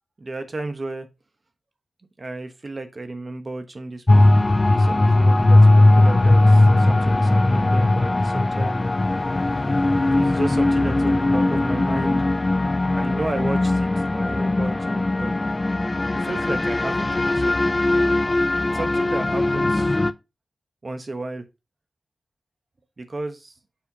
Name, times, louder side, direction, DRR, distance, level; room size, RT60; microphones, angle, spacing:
voice 1, 0.2-1.1 2.2-8.8 10.1-12.3 12.9-15.4 16.1-17.8 18.7-20.0 20.8-21.5 23.0-23.5, right 2 dB, 40° right, 8 dB, 1.0 m, -33 dB
sound 1, 4.1-20.1, left 2 dB, 30° left, 0.4 m, -19 dB
7.2 x 5.6 x 2.8 m, 0.25 s
wide cardioid pair, 95°, 0 cm